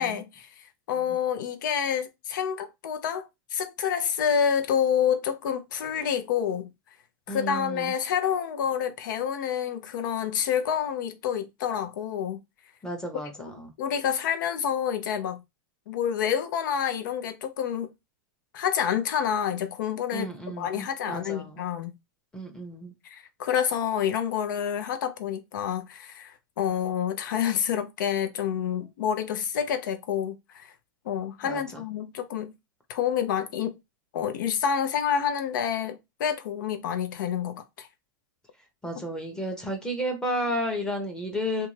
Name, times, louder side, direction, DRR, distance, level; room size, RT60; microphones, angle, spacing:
voice 1, 0.0-6.7 7.3-12.4 13.8-15.4 15.9-17.9 18.5-20.3 20.6-21.9 23.0-30.7 31.1-32.5 32.9-33.7 34.1-37.9, left 8 dB, 70° left, 0.6 m, -28 dB
voice 2, 7.3-7.9 12.8-13.7 20.1-21.6 22.3-22.9 31.4-31.8 38.8-41.7, equal, 5° left, 0.8 m, -32 dB
2.6 x 2.3 x 3.1 m
hypercardioid pair, 130°, 11 cm